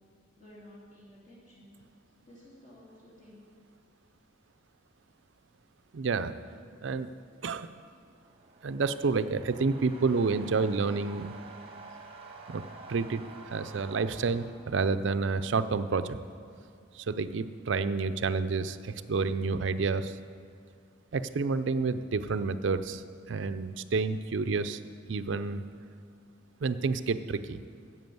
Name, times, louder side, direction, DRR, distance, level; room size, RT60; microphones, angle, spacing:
voice 1, 0.4-1.7 2.2-3.5, left 1 dB, 40° left, -8 dB, 3.0 m, -53 dB
voice 2, 5.9-6.3 6.8-7.1 7.4-7.7 8.6-11.3 12.5-12.6 12.9-16.2 16.9-20.2 21.1-23.0 23.3-24.8 25.1-25.6 26.6-27.6, right 4 dB, 60° right, 11 dB, 0.5 m, -29 dB
sound 1, 8.1-15.2, right 3 dB, 30° right, 0.9 m, -49 dB
10.5 x 7.6 x 7.8 m, 2.3 s
head